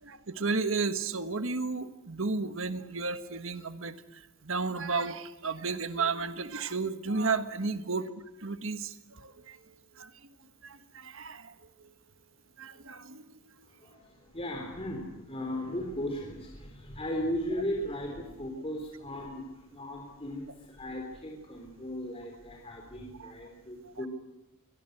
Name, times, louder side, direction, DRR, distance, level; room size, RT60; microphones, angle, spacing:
voice 1, 0.0-3.9 4.4-9.6 10.0-10.1 10.6-11.5 12.6-13.4, right 4 dB, 65° right, 10 dB, 1.5 m, -33 dB
voice 2, 13.6-24.1, equal, 25° left, 1 dB, 3.7 m, -37 dB
24.5 x 22.0 x 8.0 m, 0.98 s
head